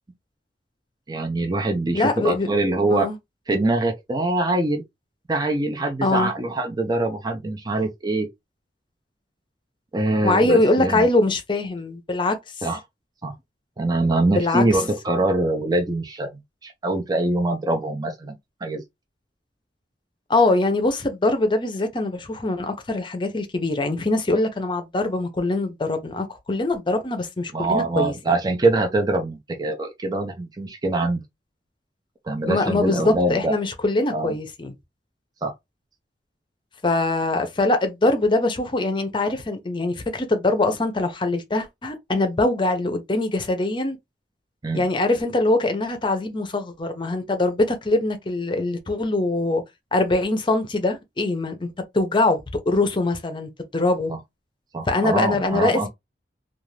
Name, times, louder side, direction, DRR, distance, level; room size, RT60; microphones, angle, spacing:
voice 1, 1.1-3.1 3.5-4.8 5.3-8.3 9.9-11.1 12.6-12.8 13.2-13.3 13.8-18.8 27.5-31.2 32.2-33.5 34.1-34.3 35.4-35.5 44.6-44.8 54.1-54.2 54.7-55.9, right 2 dB, 25° right, 0.5 m, -24 dB
voice 2, 1.9-2.5 2.9-3.2 6.0-6.3 10.2-12.4 14.3-14.8 20.3-28.1 32.5-34.7 36.8-44.0 44.7-49.6 49.9-54.1 54.9-55.9, left 2 dB, 30° left, 0.6 m, -23 dB
2.5 x 2.4 x 3.2 m
head